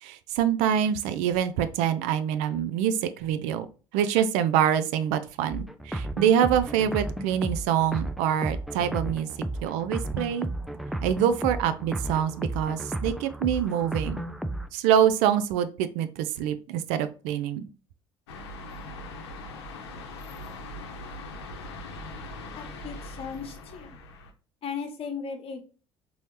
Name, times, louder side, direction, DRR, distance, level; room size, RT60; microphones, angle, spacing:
voice 1, 0.0-3.7 3.9-9.3 9.6-10.5 11.0-14.2 14.7-17.7, right 9 dB, 60° right, 11 dB, 0.4 m, -25 dB
sound 1, 5.5-14.7, right 1 dB, ahead, 0.4 m, -33 dB
sound 2, 18.3-24.3, left 2 dB, 70° left, 0.7 m, -41 dB
voice 2, 22.6-24.0 24.6-25.6, left 6 dB, 45° left, 6 dB, 1.0 m, -36 dB
4.2 x 2.7 x 3.1 m, 0.35 s
figure-of-eight pair, 60°, 14 cm